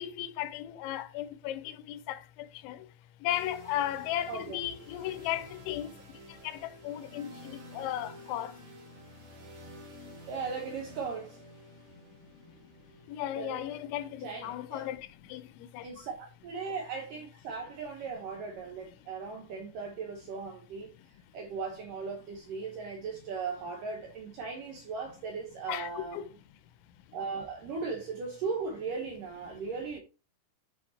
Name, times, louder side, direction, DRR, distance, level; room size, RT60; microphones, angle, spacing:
voice 1, 0.0-2.8 3.2-5.9 6.4-8.5 13.1-15.9 25.7-26.3, left 12 dB, 90° left, 3.1 m, -36 dB
sound 1, 3.3-17.1, equal, 45° right, 3.3 m, -51 dB
voice 2, 4.3-4.6 10.3-11.4 13.4-13.6 14.2-14.9 15.8-16.1 16.4-20.9 21.3-26.3 27.1-30.0, right 5 dB, 75° right, 2.0 m, -37 dB
10.5 x 5.1 x 2.8 m
omnidirectional pair, 5.2 m